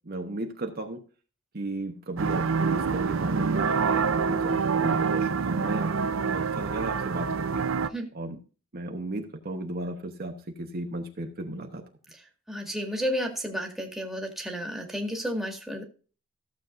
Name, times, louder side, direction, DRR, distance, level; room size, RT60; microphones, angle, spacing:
voice 1, 0.0-1.0 1.5-7.6 8.1-8.4 8.7-11.8, right 2 dB, 50° right, 4 dB, 1.0 m, -35 dB
sound 1, 2.2-7.9, right 5 dB, 75° right, 0.6 m, -26 dB
voice 2, 12.5-15.8, equal, ahead, 2 dB, 1.9 m, -32 dB
14.5 x 7.3 x 2.5 m, 0.37 s
head